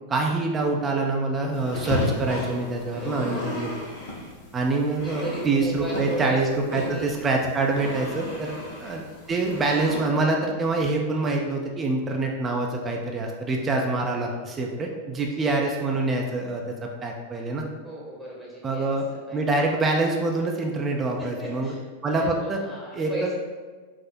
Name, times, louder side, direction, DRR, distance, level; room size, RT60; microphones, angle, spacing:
voice 1, 0.1-3.7 4.5-8.5 8.8-9.0 9.3-17.6 18.6-19.0 19.3-21.7 22.0-22.6 22.9-23.3, right 3 dB, 20° right, 1 dB, 0.5 m, -25 dB
sound 1, 1.5-10.0, left 1 dB, 60° left, 1.0 m, -34 dB
voice 2, 2.9-3.8 4.7-6.4 6.8-7.2 8.5-8.7 15.4-15.5 17.8-19.0 19.3-19.4 21.2-21.8 22.1-23.3, right 2 dB, 5° left, -6 dB, 0.9 m, -37 dB
4.7 x 2.0 x 4.3 m, 1.4 s
figure-of-eight pair, 90°, 0 cm